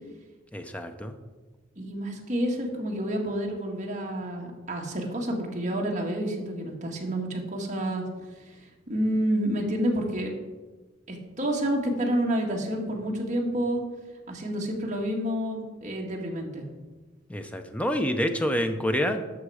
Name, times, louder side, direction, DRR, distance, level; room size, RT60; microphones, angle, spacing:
voice 1, 0.5-1.1 17.3-19.3, equal, 5° left, 7 dB, 0.7 m, -27 dB
voice 2, 1.8-8.1 8.5-8.6 8.9-10.4 11.1-13.8 14.3-16.6, equal, 40° right, 0 dB, 1.8 m, -29 dB
11.5 x 6.6 x 4.9 m, 1.3 s
head